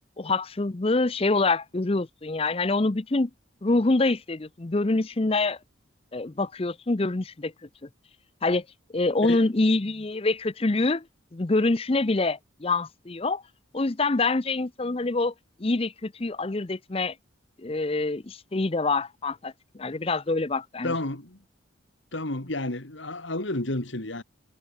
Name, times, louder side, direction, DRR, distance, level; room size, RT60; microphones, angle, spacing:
voice 1, 0.2-3.3 3.6-5.6 6.1-7.5 8.4-8.6 8.9-11.0 11.3-13.4 13.7-15.3 15.6-17.1 17.6-20.9, left 3 dB, 30° left, 0.6 m, -25 dB
voice 2, 20.8-21.4 22.1-24.2, left 2 dB, 70° left, 2.8 m, -31 dB
head